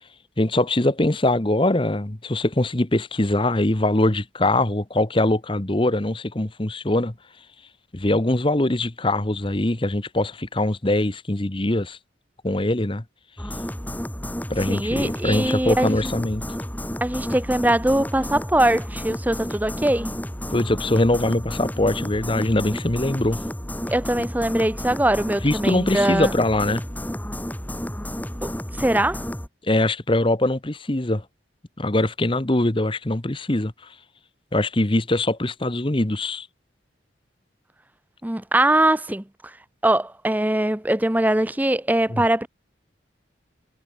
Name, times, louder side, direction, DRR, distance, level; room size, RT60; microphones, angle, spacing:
voice 1, 0.4-7.1 7.9-12.0 12.4-13.0 14.5-16.4 20.5-23.4 25.4-26.8 29.6-31.2 31.8-33.7 34.5-36.5 42.1-42.2, left 1 dB, 30° left, 1.2 m, -22 dB
sound 1, 13.4-29.5, equal, 10° left, 2.5 m, -31 dB
voice 2, 14.7-16.2 17.0-20.1 23.9-26.3 28.4-28.5 28.8-29.2 38.2-39.2 39.8-42.5, right 1 dB, 10° right, 0.7 m, -22 dB
head